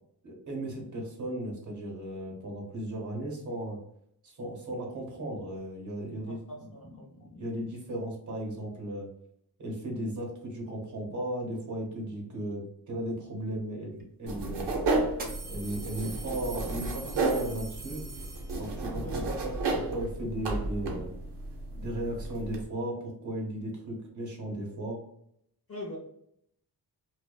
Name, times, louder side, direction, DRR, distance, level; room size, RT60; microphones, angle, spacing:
voice 1, 0.2-3.8 4.2-9.1 9.6-14.7 15.5-18.1 18.6-21.1 21.7-25.0, right 1 dB, 45° right, -1 dB, 0.9 m, -36 dB
voice 2, 6.3-7.3 18.9-19.3 25.7-26.0, left 1 dB, 35° left, -3 dB, 0.4 m, -42 dB
sound 1, 14.0-14.1 15.1-18.9, right 4 dB, 25° right, 0.6 m, -43 dB
sound 2, 14.3-22.6, right 2 dB, 85° right, 0.7 m, -33 dB
2.6 x 2.2 x 2.2 m, 0.72 s
wide cardioid pair, 95°, 41 cm